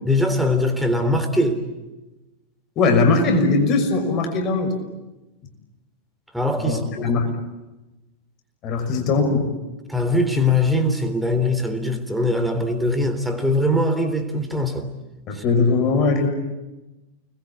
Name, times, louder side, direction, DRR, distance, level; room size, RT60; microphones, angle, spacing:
voice 1, 0.1-1.6 6.3-7.1 9.9-14.9 15.4-15.5, left 1 dB, ahead, 6 dB, 3.5 m, -21 dB
voice 2, 2.8-4.7 6.6-7.3 8.6-9.5 15.3-16.3, left 3 dB, 35° left, 5 dB, 5.9 m, -20 dB
30.0 x 21.5 x 8.5 m, 1.1 s
figure-of-eight pair, 90°, 0 cm